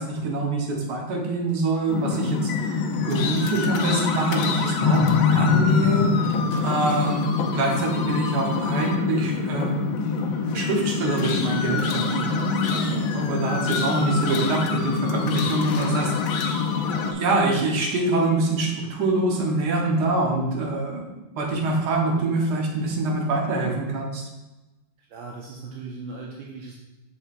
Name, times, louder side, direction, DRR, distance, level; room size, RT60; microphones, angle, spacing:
voice 1, 0.0-5.0 5.3-6.4 6.6-7.2 7.5-9.8 10.5-16.1 17.0-21.0 21.4-24.2, right 2 dB, 60° right, -1 dB, 1.7 m, -25 dB
sound 1, 1.9-17.1, left 5 dB, 75° left, 1.4 m, -24 dB
voice 2, 25.0-26.7, right 4 dB, 75° right, -2 dB, 1.5 m, -38 dB
7.3 x 6.8 x 2.6 m, 1.1 s
omnidirectional pair, 2.2 m